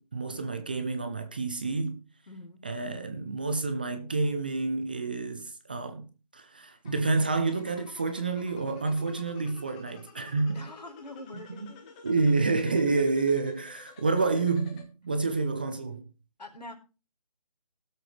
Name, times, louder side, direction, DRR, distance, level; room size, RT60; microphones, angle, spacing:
voice 1, 0.0-2.0 2.6-10.6 11.3-11.7 12.0-16.0, right 3 dB, 15° right, 0.5 m, -29 dB
voice 2, 2.3-2.6 10.5-12.0 16.4-16.7, left 2 dB, 85° left, 4.4 m, -44 dB
sound 1, 6.8-14.8, left 5 dB, 10° left, 1.0 m, -51 dB
17.5 x 7.9 x 3.2 m
figure-of-eight pair, 160°, 21 cm